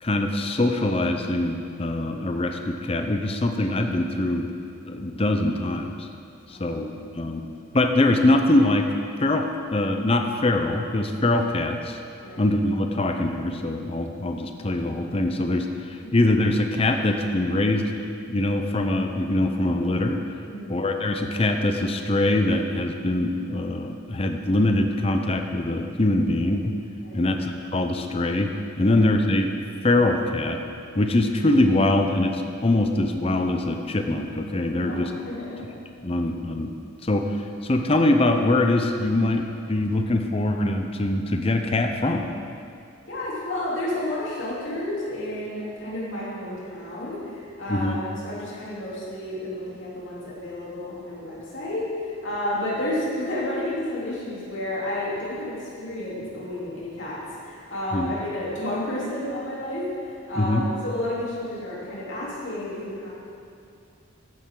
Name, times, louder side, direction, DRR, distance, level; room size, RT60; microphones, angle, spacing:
voice 1, 0.0-4.5 4.8-6.1 6.5-7.4 7.7-8.9 9.2-12.0 12.4-17.9 18.3-20.2 20.7-26.7 27.1-29.5 29.8-30.6 31.0-35.1 36.0-36.7 37.0-37.3 37.6-42.3 47.7-48.0 57.9-58.1 60.4-60.6, left 2 dB, 30° left, 5 dB, 0.6 m, -23 dB
voice 2, 6.5-7.4 12.2-12.4 20.5-20.8 27.0-27.3 28.8-28.9 34.8-35.6 36.1-36.2 43.1-57.2 57.4-63.1, left 1 dB, 65° left, -7 dB, 3.3 m, -31 dB
13.5 x 10.0 x 3.8 m, 2.4 s
head